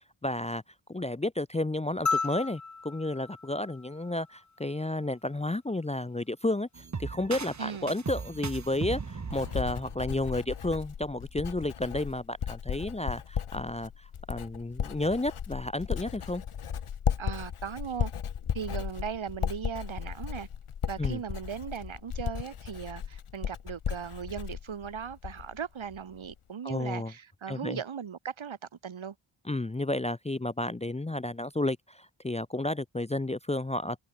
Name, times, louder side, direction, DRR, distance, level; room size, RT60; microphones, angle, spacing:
voice 1, 0.2-0.6 0.9-16.4 21.0-21.2 26.6-27.1 27.5-27.8 29.4-34.0, left 2 dB, 15° left, 0.7 m, -32 dB
sound 1, 2.1-4.6 6.2-6.3, left 4 dB, 35° left, 3.5 m, -34 dB
sound 2, 6.7-10.7, right 5 dB, 35° right, 2.0 m, -38 dB
voice 2, 7.6-7.9 17.2-18.1 18.5-20.5 20.9-28.6 28.8-29.1, right 7 dB, 70° right, 3.1 m, -38 dB
Writing, 8.6-25.6 25.9-26.3, left 8 dB, 85° left, 2.4 m, -35 dB
wide cardioid pair, 150°, 49 cm